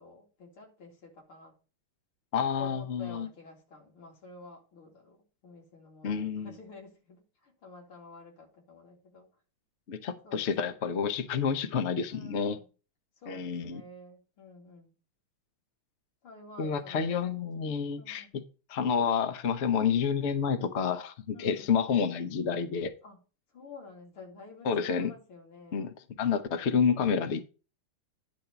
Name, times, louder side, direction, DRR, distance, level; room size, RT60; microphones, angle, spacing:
voice 1, 0.0-1.5 2.6-5.2 5.4-9.3 10.2-10.7 12.1-12.6 13.2-14.9 16.2-17.3 18.0-18.4 21.3-21.7 23.0-23.2 23.5-25.9, left 3 dB, 80° left, 3.4 m, -50 dB
voice 2, 2.3-3.3 6.0-6.5 9.9-12.6 13.3-13.8 16.6-18.4 18.7-23.0 24.6-25.1 25.7-25.9 26.2-27.5, left 6 dB, 60° left, 0.7 m, -29 dB
10.5 x 3.5 x 6.8 m
omnidirectional pair, 2.4 m